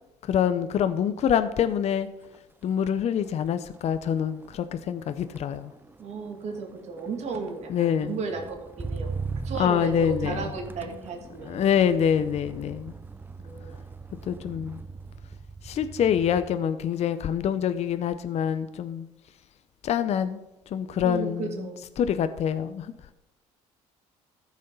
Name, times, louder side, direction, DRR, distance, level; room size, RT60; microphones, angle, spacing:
voice 1, 0.3-2.1 2.6-5.7 7.7-8.2 9.6-10.4 11.4-12.9 14.3-14.8 15.6-19.1 19.8-20.4 20.7-21.7 22.0-22.9, left 8 dB, 50° left, 11 dB, 0.7 m, -25 dB
Motor vehicle (road), 1.6-1.9 2.2-16.7 17.0-17.5, right 4 dB, 15° right, 0.5 m, -40 dB
voice 2, 6.0-9.1 9.4-11.6 13.4-13.8 21.0-21.9, right 4 dB, 55° right, 2 dB, 2.5 m, -34 dB
14.0 x 6.4 x 5.4 m, 0.94 s
supercardioid pair, 85°, 14 cm